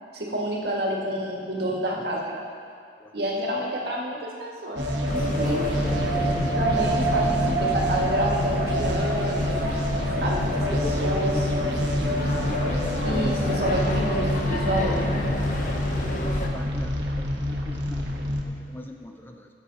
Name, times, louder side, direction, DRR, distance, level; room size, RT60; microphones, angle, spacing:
voice 1, 0.1-2.4 3.1-5.6 6.6-9.6 10.2-11.5 13.0-15.2, equal, 65° right, -2 dB, 1.8 m, -28 dB
sound 1, 4.8-18.4, equal, 90° right, 1.2 m, -26 dB
sound 2, 5.1-16.5, left 1 dB, 50° left, 1.0 m, -31 dB
voice 2, 7.2-7.8 10.0-12.2 16.5-19.5, left 1 dB, 10° left, 3 dB, 0.4 m, -40 dB
16.0 x 7.0 x 4.0 m, 2.4 s
head